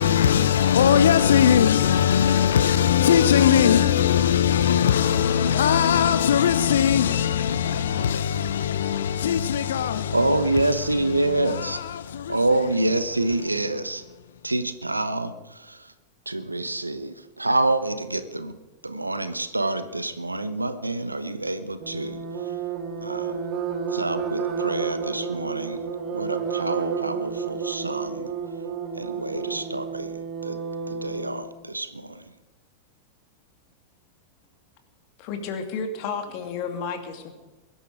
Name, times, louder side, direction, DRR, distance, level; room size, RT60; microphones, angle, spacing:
voice 1, 0.0-10.3 10.6-12.4, left 9 dB, 65° left, 0.7 m, -20 dB
voice 2, 10.1-11.8 12.3-14.0 14.4-15.9 16.3-18.6 18.8-22.2 23.0-23.4 23.9-28.3 28.9-30.2 30.4-30.6 30.9-32.3, right 2 dB, 85° right, 1.1 m, -27 dB
sound 1, 21.8-31.4, right 6 dB, 35° right, 3.6 m, -31 dB
voice 3, 35.2-37.3, left 5 dB, 45° left, 2.5 m, -31 dB
22.5 x 12.0 x 5.0 m
figure-of-eight pair, 90°, 0 cm